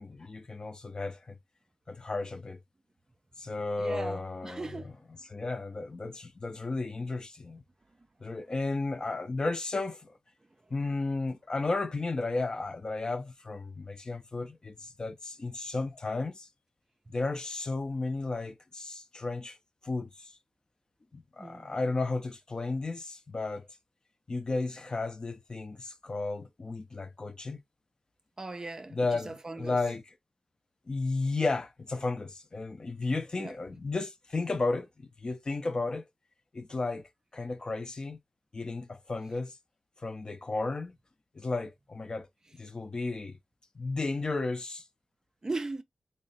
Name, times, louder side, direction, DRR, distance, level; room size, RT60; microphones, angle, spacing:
voice 1, 0.0-1.4 1.9-2.6 3.4-7.6 8.2-10.1 10.7-16.5 17.1-19.6 19.8-20.3 21.1-23.7 24.3-27.6 28.9-30.1 30.9-36.0 36.5-38.2 38.5-39.6 40.0-41.0 41.3-42.3 42.5-43.4 43.8-44.8, left 3 dB, 35° left, 0.5 m, -33 dB
voice 2, 3.8-4.9 21.4-21.7 28.4-29.0 29.3-29.8 33.4-33.5 45.4-45.8, right 3 dB, 25° right, 0.4 m, -38 dB
3.7 x 2.1 x 3.9 m
wide cardioid pair, 110°, 2 cm